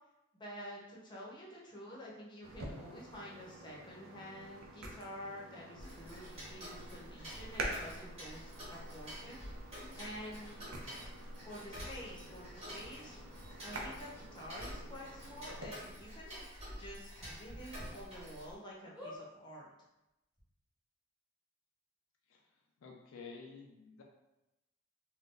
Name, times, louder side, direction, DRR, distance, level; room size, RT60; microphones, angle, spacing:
voice 1, 0.3-9.4 10.0-10.6 11.4-13.1 13.6-16.5 16.8-19.7, equal, 20° left, -5 dB, 0.7 m, -49 dB
sound 1, 2.4-15.7, right 1 dB, 75° right, 0.5 m, -48 dB
Tick-tock, 5.8-18.5, equal, 30° right, 1.2 m, -48 dB
sound 2, 12.8-12.9 13.4-13.5 14.5-14.6 14.9-15.0 15.4-15.5 17.2-17.9 18.4-18.5 18.9-19.2 20.1-20.2 20.3-20.4, left 1 dB, 5° right, 1.0 m, -49 dB
voice 2, 22.8-24.0, left 4 dB, 70° left, 1 dB, 0.4 m, -51 dB
2.5 x 2.2 x 3.7 m, 0.94 s
head